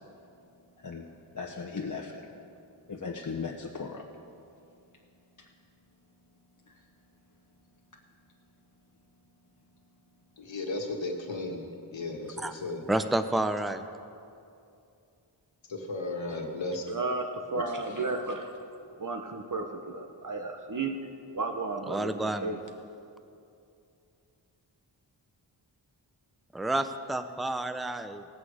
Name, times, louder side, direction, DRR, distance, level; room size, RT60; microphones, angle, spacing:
voice 1, 1.3-2.3 2.9-4.0 17.6-17.7, left 5 dB, 40° left, 0 dB, 0.9 m, -37 dB
voice 2, 10.4-11.6 11.9-12.8 15.7-17.0, left 2 dB, 80° left, 2 dB, 1.6 m, -35 dB
voice 3, 12.9-13.9 21.9-22.5 26.5-28.3, right 1 dB, ahead, 9 dB, 0.5 m, -30 dB
voice 4, 16.9-18.5 19.0-21.0 21.3-22.6, right 3 dB, 45° right, 3 dB, 0.9 m, -33 dB
18.0 x 8.3 x 4.9 m, 2.6 s
wide cardioid pair, 85°, 45 cm